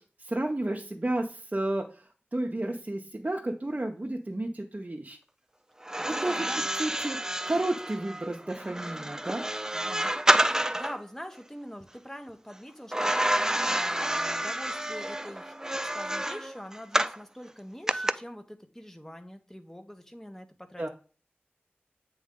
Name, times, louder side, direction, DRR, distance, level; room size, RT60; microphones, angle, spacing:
voice 1, 0.2-5.2 6.2-6.5 6.8-7.2 7.5-9.4 20.8-20.9, right 1 dB, 40° right, 0 dB, 0.7 m, -31 dB
sound 1, 5.8-11.0 12.9-17.2 17.9-18.1, right 1 dB, 15° right, 0.3 m, -29 dB
voice 2, 6.0-6.7 9.7-10.1 10.5-15.5 15.8-20.9, equal, 10° left, 7 dB, 0.8 m, -44 dB
8.2 x 3.2 x 3.7 m, 0.38 s
wide cardioid pair, 50°, 4 cm